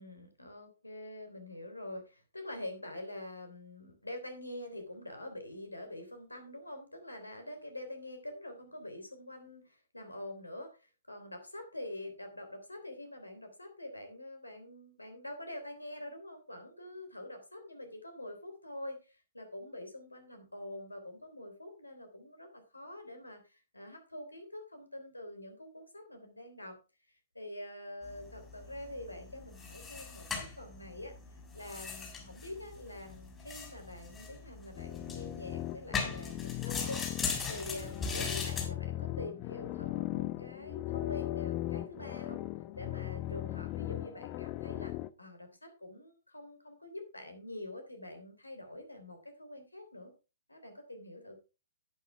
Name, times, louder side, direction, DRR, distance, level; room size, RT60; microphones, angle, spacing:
voice 1, 0.0-26.8 27.1-31.1 31.5-42.4 42.8-44.9 45.2-50.1 50.5-51.4, left 1 dB, 85° left, 6 dB, 3.4 m, -46 dB
sound 1, 28.0-38.7, left 4 dB, 15° left, 3.7 m, -40 dB
sound 2, 34.7-45.1, left 15 dB, 30° left, 0.6 m, -38 dB
11.0 x 9.2 x 3.5 m, 0.30 s
figure-of-eight pair, 120°, 0 cm